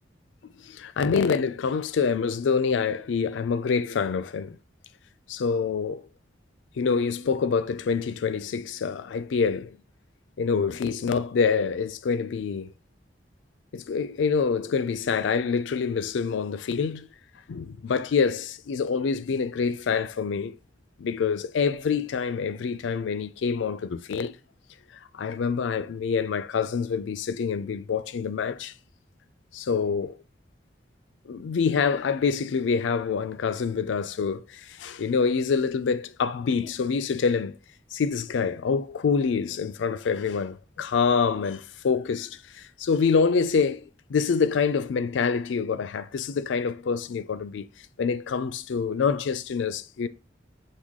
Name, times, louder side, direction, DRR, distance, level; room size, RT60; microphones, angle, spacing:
voice 1, 0.6-4.6 5.3-6.0 6.8-9.8 10.4-12.7 13.7-17.1 17.5-20.6 21.0-24.3 25.1-28.7 29.5-30.2 31.3-37.6 37.9-47.7 48.0-50.1, left 5 dB, 85° left, 0.4 m, -26 dB
6.2 x 2.2 x 3.6 m
head